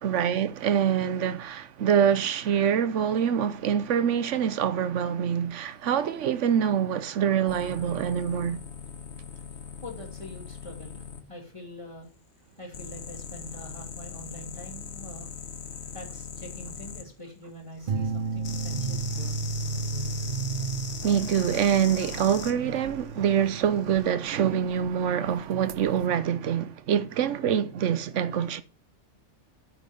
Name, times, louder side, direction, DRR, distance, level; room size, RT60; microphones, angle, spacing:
voice 1, 0.0-8.6 21.0-28.6, right 8 dB, 90° right, 1.1 m, -25 dB
sound 1, 7.5-11.2 12.7-17.0 18.4-22.5 23.8-24.0, left 6 dB, 65° left, 1.5 m, -40 dB
voice 2, 9.8-12.1 12.6-15.3 15.9-19.3, left 1 dB, 25° left, 3.0 m, -44 dB
sound 2, 17.9-24.9 25.4-26.1, right 4 dB, 55° right, 0.7 m, -33 dB
9.3 x 7.6 x 5.4 m
omnidirectional pair, 1.2 m